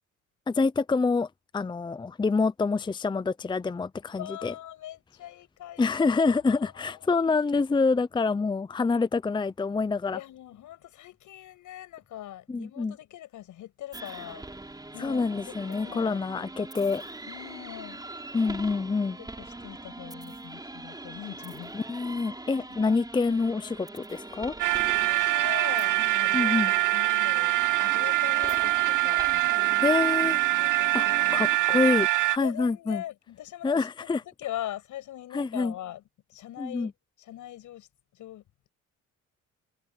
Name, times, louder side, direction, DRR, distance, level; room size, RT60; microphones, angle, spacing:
voice 1, 0.5-1.3 1.5-4.5 5.8-10.2 12.5-12.9 15.0-17.0 18.3-19.2 21.7-24.5 26.3-26.7 29.8-30.4 30.9-31.1 31.3-33.0 33.6-34.2 35.3-35.7 36.6-36.9, left 4 dB, 15° left, 0.6 m, -26 dB
voice 2, 4.2-7.0 10.1-16.2 17.3-18.1 19.2-21.8 22.5-23.0 25.0-26.6 26.9-31.4 31.7-32.0 32.4-36.0 36.3-36.9 37.2-37.9 38.1-38.4, left 13 dB, 80° left, 8.0 m, -42 dB
sound 1, 13.9-31.6, right 2 dB, 15° right, 5.0 m, -42 dB
sound 2, 24.6-32.4, right 18 dB, 85° right, 1.4 m, -24 dB
cardioid pair, 90°, 30 cm